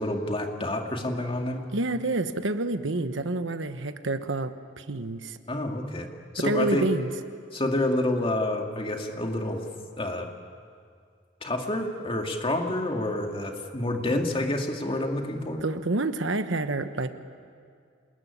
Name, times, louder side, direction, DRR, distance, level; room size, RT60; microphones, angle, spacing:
voice 1, 0.0-1.6 5.5-6.1 6.3-6.9 7.5-9.6 10.0-10.3 11.4-15.6, left 1 dB, 30° left, 3 dB, 2.3 m, -28 dB
voice 2, 1.7-5.4 6.4-7.1 15.6-17.2, right 2 dB, 80° right, 9 dB, 1.2 m, -28 dB
27.5 x 20.5 x 9.8 m, 2.2 s
head